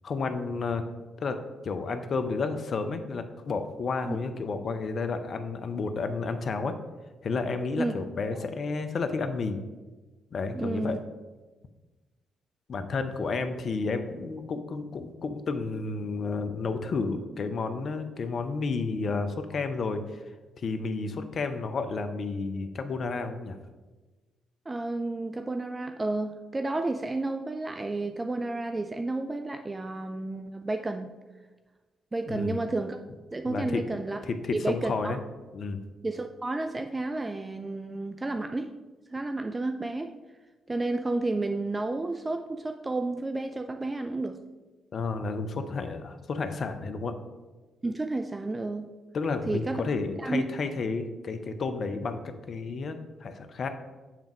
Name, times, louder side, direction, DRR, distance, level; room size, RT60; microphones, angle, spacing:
voice 1, 0.0-0.8 1.2-1.4 1.6-6.7 7.2-9.6 10.3-11.0 12.7-20.0 20.6-23.6 32.3-32.6 33.5-33.8 34.2-35.2 35.5-35.8 44.9-47.1 49.1-53.7, left 4 dB, 50° left, 8 dB, 0.6 m, -31 dB
voice 2, 10.5-11.0 24.7-31.1 32.1-33.0 33.3-34.2 34.5-35.2 36.0-38.7 39.1-40.1 40.7-44.4 47.8-48.9 49.5-49.8 50.2-50.4, right 2 dB, 25° right, 7 dB, 0.4 m, -31 dB
7.3 x 3.5 x 5.1 m, 1.2 s
hypercardioid pair, 45°, 0 cm